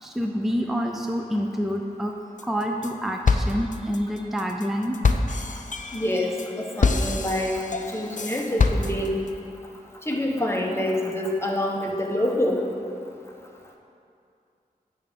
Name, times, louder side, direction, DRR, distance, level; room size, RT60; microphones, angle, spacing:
voice 1, 0.0-5.0 5.8-6.0, equal, ahead, 2 dB, 0.5 m, -28 dB
sound 1, 2.4-2.9 3.3-9.3, left 4 dB, 55° left, 0.5 m, -25 dB
voice 2, 5.9-9.2 10.1-12.6, left 1 dB, 15° left, 0 dB, 1.2 m, -26 dB
9.9 x 3.6 x 6.8 m, 2.5 s
wide cardioid pair, 45°, 16 cm